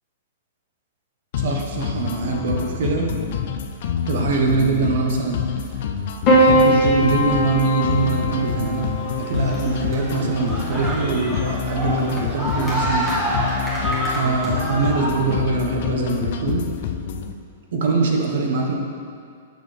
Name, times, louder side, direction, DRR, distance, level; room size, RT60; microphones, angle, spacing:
sound 1, 1.3-17.3, left 7 dB, 60° left, 0.4 m, -27 dB
voice 1, 1.3-3.1 4.0-5.4 6.3-8.9 9.2-13.1 14.1-16.6 17.7-18.7, right 4 dB, 65° right, 1 dB, 1.0 m, -23 dB
Piano, 6.3-10.7 11.9-12.6, right 1 dB, 35° left, 1.6 m, -21 dB
sound 2, 8.4-15.1, equal, 10° right, 1.2 m, -28 dB
6.5 x 6.4 x 3.3 m, 2.4 s
hypercardioid pair, 150°, 0 cm